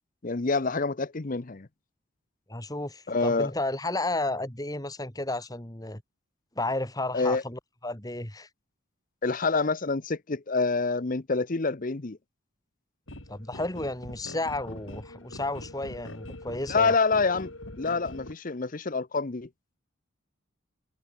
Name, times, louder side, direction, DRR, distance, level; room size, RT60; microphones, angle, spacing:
voice 1, 0.2-1.7 3.1-3.5 7.1-7.4 9.2-12.2 16.7-19.5, left 4 dB, 40° left, 0.8 m, -27 dB
voice 2, 2.5-6.0 6.6-8.5 13.3-16.9, left 2 dB, 20° left, 3.2 m, -32 dB
sound 1, 13.1-18.3, left 1 dB, 70° left, 4.2 m, -43 dB
head